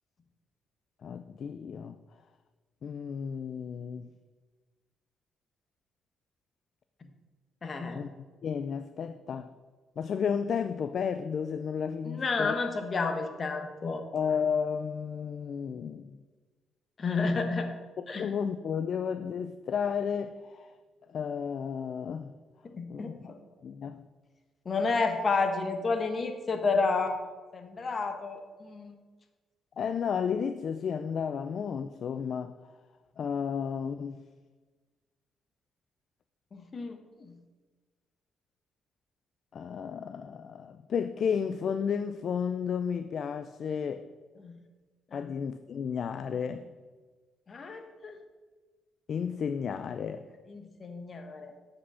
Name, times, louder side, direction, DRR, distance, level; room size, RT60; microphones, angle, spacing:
voice 1, 1.0-2.0 2.8-4.1 7.9-8.1 8.4-9.5 10.0-12.6 14.1-16.2 18.0-20.7 21.1-22.3 22.9-23.1 23.6-24.0 29.8-32.5 33.2-34.2 39.5-44.0 45.1-46.7 49.1-50.3, left 7 dB, 60° left, 10 dB, 0.3 m, -32 dB
voice 2, 7.6-8.0 12.0-14.0 17.0-17.7 18.1-18.3 22.7-23.4 24.6-27.2 27.5-28.9 36.5-37.3 44.4-44.6 45.1-45.3 47.5-48.2 50.5-51.5, left 4 dB, 40° left, 6 dB, 1.1 m, -31 dB
8.2 x 5.1 x 5.6 m, 1.4 s
cardioid pair, 90°, 0 cm